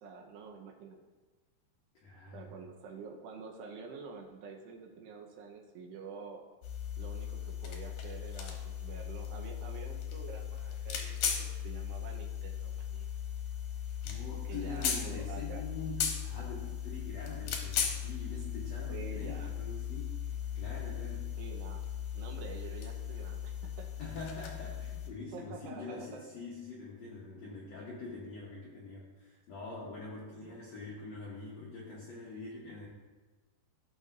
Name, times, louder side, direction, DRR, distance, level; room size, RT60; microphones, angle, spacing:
voice 1, 0.0-1.0 2.3-6.4 7.0-13.1 14.4-15.6 18.9-19.5 21.4-23.9 25.3-26.2 30.5-30.6, right 5 dB, 80° right, 1 dB, 3.0 m, -48 dB
voice 2, 2.0-2.6 14.0-21.4 24.0-32.9, left 3 dB, 85° left, -4 dB, 1.5 m, -44 dB
sound 1, 6.6-25.1, left 8 dB, 70° left, 2.1 m, -37 dB
15.0 x 6.6 x 2.6 m, 1.3 s
omnidirectional pair, 5.0 m